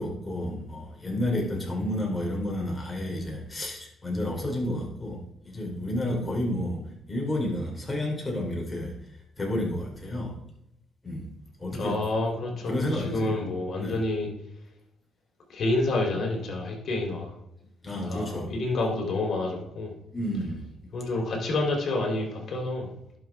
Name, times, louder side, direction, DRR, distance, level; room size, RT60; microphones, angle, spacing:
voice 1, 0.0-8.9 9.4-10.4 11.0-11.3 11.6-12.0 12.6-13.4 13.8-14.0 17.8-18.6 20.1-20.6, left 1 dB, 20° left, -1 dB, 3.3 m, -31 dB
voice 2, 11.6-14.3 15.5-17.3 18.1-19.9 20.9-22.9, left 2 dB, 55° left, -1 dB, 3.5 m, -28 dB
11.0 x 6.3 x 3.5 m, 0.84 s
cardioid pair, 90°, 0 cm